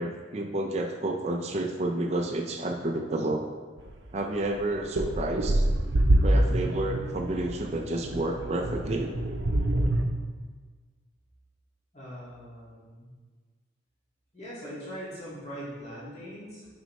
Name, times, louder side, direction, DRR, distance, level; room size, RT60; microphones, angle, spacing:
voice 1, 0.0-3.4 4.1-5.7 6.2-9.1, right 1 dB, 35° right, 2 dB, 0.4 m, -30 dB
sound 1, 3.8-3.9 4.4-10.0, right 1 dB, 75° right, 0.7 m, -26 dB
voice 2, 11.9-13.1 14.3-16.7, equal, 35° left, -9 dB, 1.9 m, -41 dB
7.7 x 5.3 x 3.1 m, 1.4 s
head